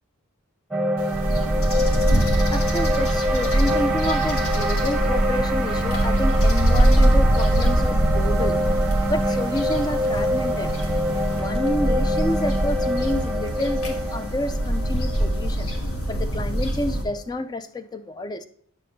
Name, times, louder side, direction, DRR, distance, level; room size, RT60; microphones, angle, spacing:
sound 1, 0.7-17.0, equal, 5° right, 0.8 m, -26 dB
sound 2, 1.0-11.4, right 2 dB, 85° right, 0.6 m, -36 dB
sound 3, 1.2-17.0, right 1 dB, 85° left, 1.5 m, -23 dB
voice 1, 2.5-8.6 9.1-10.7 11.3-15.7 16.1-18.4, left 2 dB, 20° left, 10 dB, 0.4 m, -29 dB
9.3 x 6.5 x 2.6 m, 0.64 s
head